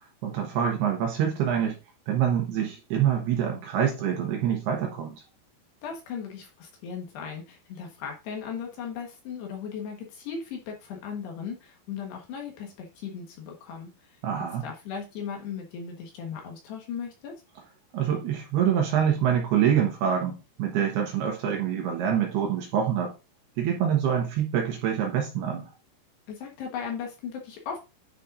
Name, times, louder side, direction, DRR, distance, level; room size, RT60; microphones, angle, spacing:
voice 1, 0.2-1.8 2.1-5.2 14.2-14.6 17.9-23.1 23.6-25.7, right 9 dB, 70° right, 1 dB, 2.8 m, -26 dB
voice 2, 5.8-14.1 14.6-17.3 26.3-27.8, left 6 dB, 65° left, 1 dB, 3.2 m, -37 dB
10.0 x 5.4 x 2.6 m, 0.28 s
omnidirectional pair, 5.7 m